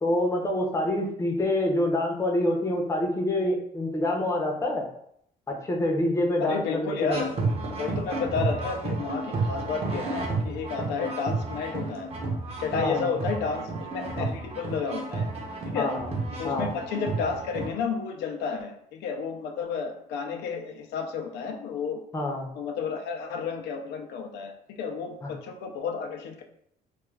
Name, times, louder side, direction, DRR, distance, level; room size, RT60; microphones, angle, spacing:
voice 1, 0.0-4.9 5.5-7.2 12.7-13.2 15.7-16.1 16.4-16.7 22.1-22.5 25.2-25.3, left 1 dB, 15° left, 0 dB, 0.6 m, -26 dB
voice 2, 6.4-7.3 7.8-12.1 12.6-15.3 15.7-15.9 16.3-22.0 22.6-26.4, left 5 dB, 80° left, 3 dB, 0.4 m, -31 dB
sound 1, 7.1-17.7, right 3 dB, 35° right, 0.7 m, -31 dB
2.3 x 2.1 x 3.2 m, 0.69 s
cardioid pair, 110°, 17 cm